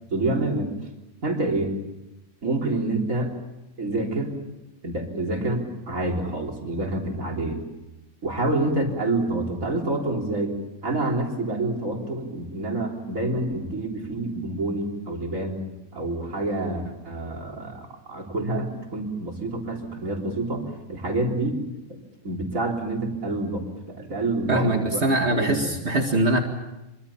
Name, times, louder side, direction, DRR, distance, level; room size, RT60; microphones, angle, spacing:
voice 1, 0.1-0.7 1.2-1.8 2.4-3.4 3.8-4.4 4.8-7.6 8.2-10.6 10.8-15.7 15.9-21.6 21.9-22.0 22.2-25.0 25.3-25.7, right 2 dB, 80° right, 1 dB, 4.2 m, -27 dB
voice 2, 24.5-26.4, right 1 dB, 55° right, 3 dB, 2.2 m, -22 dB
25.5 x 24.5 x 7.2 m, 0.97 s
omnidirectional pair, 1.4 m